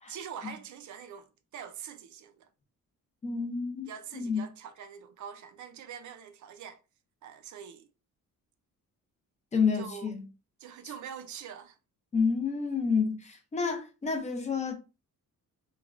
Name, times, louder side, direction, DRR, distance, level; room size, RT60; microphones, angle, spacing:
voice 1, 0.1-2.5 3.9-6.8 7.2-7.9 9.7-10.1 10.6-11.8, right 8 dB, 60° right, 0.4 m, -44 dB
voice 2, 3.2-4.4 9.5-10.2 12.1-14.7, left 5 dB, 20° left, 0.5 m, -29 dB
3.0 x 2.2 x 2.4 m
wide cardioid pair, 165°, 34 cm